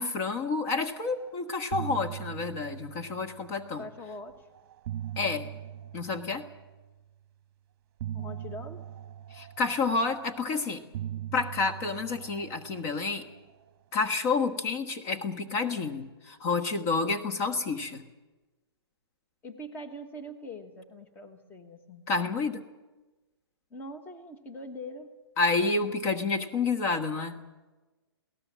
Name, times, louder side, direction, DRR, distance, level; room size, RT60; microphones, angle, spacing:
voice 1, 0.0-3.8 5.2-5.5 5.9-6.5 9.3-10.8 11.3-13.3 13.9-18.0 22.1-22.6 25.4-27.4, left 4 dB, 30° left, 6 dB, 1.3 m, -29 dB
sound 1, 1.1-1.3 1.5-3.9 4.6-7.0 8.0-10.4 10.9-13.5, right 11 dB, 35° right, 1.1 m, -41 dB
voice 2, 3.6-4.5 8.1-8.9 19.4-22.1 23.7-25.1, left 1 dB, 15° left, 7 dB, 1.4 m, -43 dB
23.0 x 17.5 x 7.5 m, 1.2 s
hypercardioid pair, 145°, 14 cm